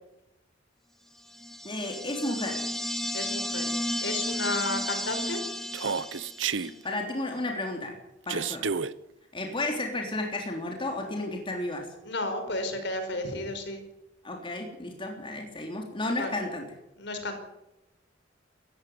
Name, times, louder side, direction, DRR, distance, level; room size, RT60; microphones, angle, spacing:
sound 1, 1.3-6.7, left 1 dB, ahead, 1.3 m, -33 dB
voice 1, 1.6-2.6 6.6-8.0 8.3-8.7 9.3-11.9 14.2-16.6, left 2 dB, 30° left, 2 dB, 3.5 m, -32 dB
voice 2, 3.1-3.7 4.0-5.4 12.0-13.8 16.2-16.3 17.0-17.4, left 2 dB, 65° left, 7 dB, 5.2 m, -32 dB
Human voice, 5.7-6.7 8.3-8.9, right 6 dB, 85° right, 0.9 m, -30 dB
19.5 x 15.0 x 9.5 m, 0.89 s
head